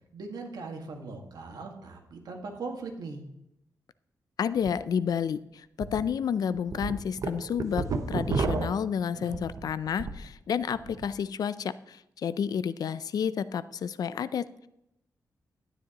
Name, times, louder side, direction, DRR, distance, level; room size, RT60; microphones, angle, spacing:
voice 1, 0.1-3.2 9.1-9.4, right 3 dB, 80° right, 3 dB, 1.8 m, -40 dB
voice 2, 4.4-14.7, left 7 dB, 70° left, 15 dB, 0.4 m, -30 dB
sound 1, 4.6-4.7 5.1-5.2 5.8-6.0 6.5-10.3 10.6-11.1, right 4 dB, 60° right, 0.9 m, -31 dB
12.0 x 10.0 x 3.0 m, 0.84 s
wide cardioid pair, 130°, 7 cm